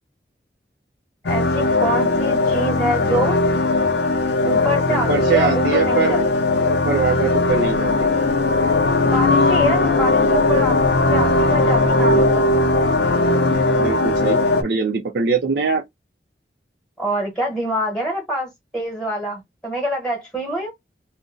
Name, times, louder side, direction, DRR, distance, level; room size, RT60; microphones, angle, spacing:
voice 1, 1.2-3.4 4.4-6.2 9.0-10.8 11.1-12.4 17.0-20.7, right 1 dB, 5° left, 1.1 m, -25 dB
sound 1, 1.3-14.6, left 2 dB, 75° left, 0.5 m, -18 dB
voice 2, 4.9-6.1 6.6-8.1 13.8-15.8, right 5 dB, 65° right, 0.5 m, -22 dB
2.6 x 2.1 x 3.6 m
head